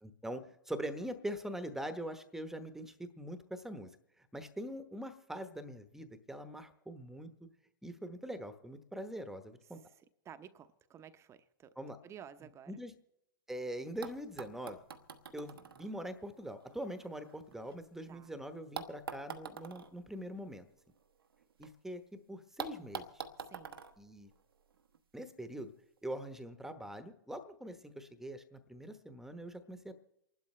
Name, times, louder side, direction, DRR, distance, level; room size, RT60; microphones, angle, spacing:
voice 1, 0.0-3.9 4.2-7.3 7.8-9.8 11.8-12.0 12.7-12.9 13.5-14.8 15.3-20.7 21.6-22.0 22.3-23.2 24.0-24.3 25.1-25.7 26.0-29.9, right 1 dB, 5° right, 1.0 m, -43 dB
voice 2, 10.2-11.7 12.0-12.7 18.1-18.3 23.4-23.8, right 8 dB, 25° right, 0.8 m, -53 dB
sound 1, 13.6-13.7 14.0-18.1 18.7-21.7 22.0-22.1 22.6-25.0 26.0-26.1, right 6 dB, 85° right, 1.1 m, -47 dB
28.5 x 12.0 x 3.3 m
hypercardioid pair, 110°, 12 cm